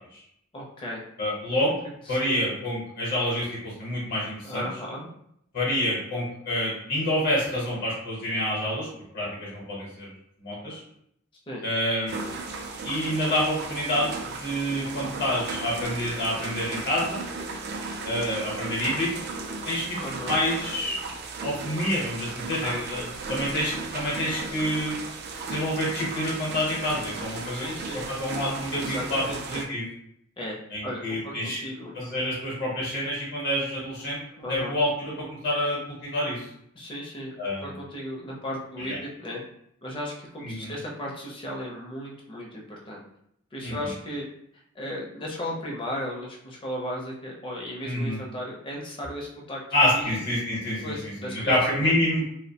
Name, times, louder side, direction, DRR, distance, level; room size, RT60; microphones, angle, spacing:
voice 1, 0.5-1.0 2.1-2.4 4.4-5.1 11.5-11.6 20.0-20.4 22.6-23.2 27.5-28.0 28.8-29.6 30.4-30.6 30.8-32.0 34.4-34.7 36.7-37.3 37.6-39.4 39.8-43.0 43.5-44.3 44.7-49.6 49.9-50.2 50.8-51.9, left 1 dB, 25° left, -2 dB, 0.6 m, -35 dB
voice 2, 1.2-1.8 2.1-4.7 5.5-8.9 9.1-10.1 10.4-10.8 11.6-12.2 12.8-14.1 14.4-17.2 18.0-19.1 19.6-20.0 20.3-21.0 21.4-25.0 25.5-27.7 28.1-29.9 30.7-31.6 31.9-34.2 34.5-36.5 37.4-37.6 38.8-39.0 40.4-40.7 43.6-43.9 47.8-48.2 49.7-52.2, left 1 dB, 50° left, -5 dB, 0.9 m, -27 dB
sound 1, 12.1-29.7, right 3 dB, 55° right, 0.3 m, -36 dB
2.6 x 2.1 x 2.8 m, 0.74 s
head